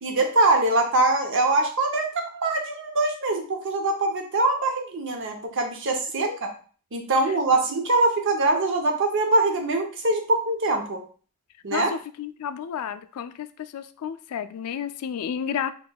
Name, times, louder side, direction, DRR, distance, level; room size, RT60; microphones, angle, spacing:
voice 1, 0.0-6.5 6.9-11.0 11.6-11.9, right 2 dB, 60° right, 4 dB, 0.7 m, -23 dB
voice 2, 11.7-15.7, left 8 dB, 85° left, 11 dB, 0.3 m, -32 dB
4.3 x 3.0 x 2.3 m, 0.41 s
head